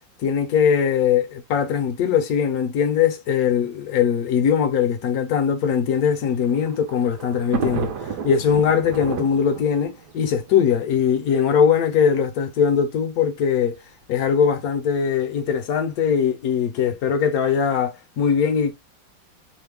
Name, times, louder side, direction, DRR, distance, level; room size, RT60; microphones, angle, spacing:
voice 1, 0.2-13.8 14.1-18.7, left 7 dB, 70° left, 0.9 m, -21 dB
Thunder, 6.1-11.4 12.2-12.3 12.6-12.7 13.7-14.0, right 6 dB, 70° right, 1.0 m, -32 dB
3.1 x 2.1 x 3.2 m
omnidirectional pair, 2.0 m